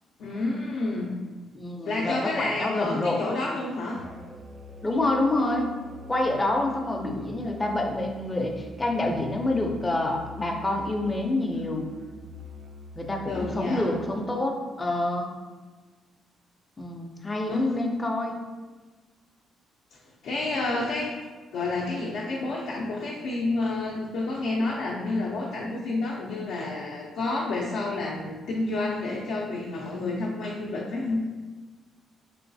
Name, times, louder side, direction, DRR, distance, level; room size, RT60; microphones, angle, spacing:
voice 1, 0.2-1.2 1.8-4.0 13.3-13.9 17.5-17.7 19.9-20.0 20.2-21.2 21.5-31.2, left 2 dB, 75° left, -4 dB, 0.4 m, -29 dB
voice 2, 1.5-3.2 4.8-5.7 6.1-11.9 13.0-15.3 16.8-18.4, left 2 dB, 20° left, 2 dB, 0.5 m, -27 dB
Musical instrument, 4.0-13.8, left 1 dB, 40° right, 0.4 m, -44 dB
3.1 x 3.0 x 2.6 m, 1.3 s
cardioid pair, 90°, 0 cm